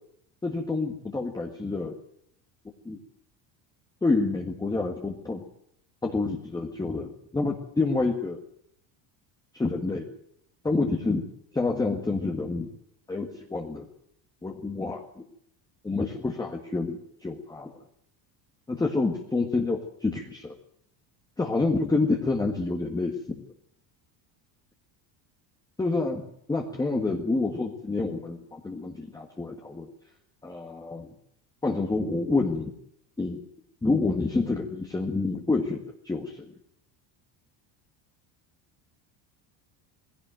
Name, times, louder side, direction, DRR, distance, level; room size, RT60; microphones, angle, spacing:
voice 1, 0.4-1.9 2.8-3.0 4.0-5.4 6.0-8.4 9.5-10.0 10.6-11.2 11.5-12.7 13.1-13.8 14.4-15.2 15.8-17.7 18.7-20.6 21.4-23.4 25.8-26.2 26.5-29.9 30.4-31.1 31.6-32.7 33.2-33.4 33.8-35.8 36.0-36.5, left 3 dB, 10° left, 1 dB, 1.6 m, -28 dB
19.0 x 16.5 x 9.1 m, 0.70 s
cardioid pair, 155°, 45 cm